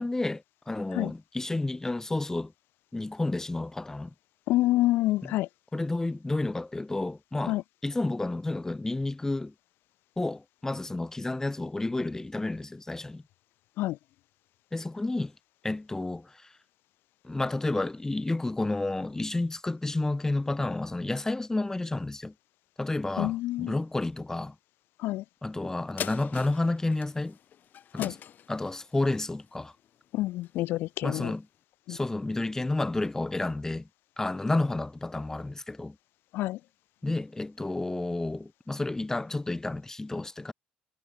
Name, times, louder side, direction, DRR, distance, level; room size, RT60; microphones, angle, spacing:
voice 1, 0.0-2.5 2.9-4.1 5.2-5.3 5.7-9.5 10.2-13.2 14.7-15.3 15.6-16.5 17.2-22.3 22.8-24.5 25.4-27.4 27.9-28.2 28.5-29.7 31.0-31.5 31.9-33.9 34.2-36.0 37.0-40.5, left 2 dB, 15° left, 2.9 m, -31 dB
voice 2, 4.5-5.5 7.5-7.6 13.8-14.0 23.2-23.7 25.0-25.2 27.9-28.1 30.1-31.3 31.9-32.0 36.3-36.6, left 16 dB, 80° left, 3.7 m, -27 dB
sound 1, 26.0-30.7 31.2-31.3, left 9 dB, 55° left, 4.0 m, -42 dB
cardioid pair, 90°, 4 cm